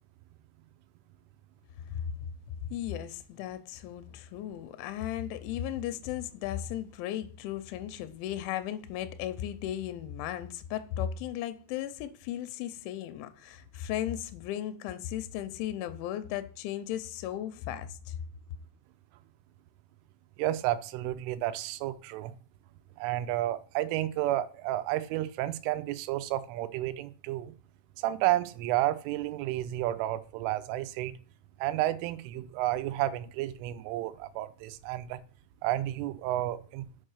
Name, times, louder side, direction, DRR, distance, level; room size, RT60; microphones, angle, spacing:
voice 1, 2.7-18.1, left 11 dB, 85° left, 2.9 m, -36 dB
voice 2, 20.4-22.3 23.0-27.5 28.0-31.1 31.6-35.2 35.6-36.9, right 14 dB, 90° right, 3.2 m, -31 dB
7.6 x 5.4 x 6.5 m
omnidirectional pair, 5.5 m